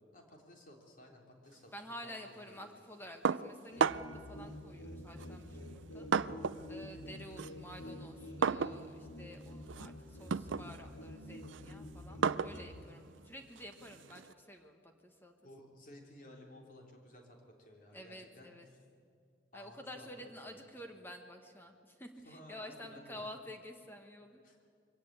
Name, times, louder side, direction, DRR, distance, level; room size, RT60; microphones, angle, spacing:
voice 1, 0.1-1.7 2.0-2.7 15.4-18.8 19.5-20.6 22.2-23.2 24.4-24.6, left 1 dB, 45° left, 1 dB, 3.3 m, -56 dB
voice 2, 1.7-6.1 6.7-15.3 17.9-18.7 19.5-24.4, equal, 10° left, 4 dB, 1.3 m, -50 dB
sound 1, 3.3-4.3 5.2-6.7 7.0-14.3, right 6 dB, 85° right, 0.5 m, -36 dB
sound 2, 3.7-12.8, left 1 dB, 75° left, 2.0 m, -48 dB
23.0 x 17.0 x 8.8 m, 2.2 s
head